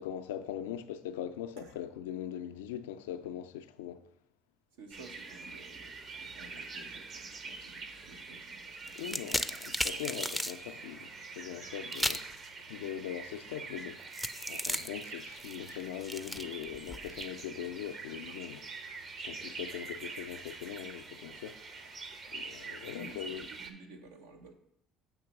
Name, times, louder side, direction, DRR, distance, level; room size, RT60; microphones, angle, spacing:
voice 1, 0.0-4.0 9.0-12.3 12.7-14.0 14.5-18.6 19.2-21.9 22.3-23.5, left 10 dB, 90° left, 0.3 m, -41 dB
voice 2, 4.7-9.3 10.7-10.8 17.6-17.7 18.3-18.4 20.7-20.8 22.9-24.5, right 2 dB, 90° right, 0.7 m, -53 dB
sound 1, 4.9-23.7, right 4 dB, 50° right, 0.8 m, -45 dB
sound 2, 8.9-10.6 11.9-12.3 14.1-17.3, equal, ahead, 0.4 m, -35 dB
7.0 x 3.0 x 5.9 m
hypercardioid pair, 70°, 0 cm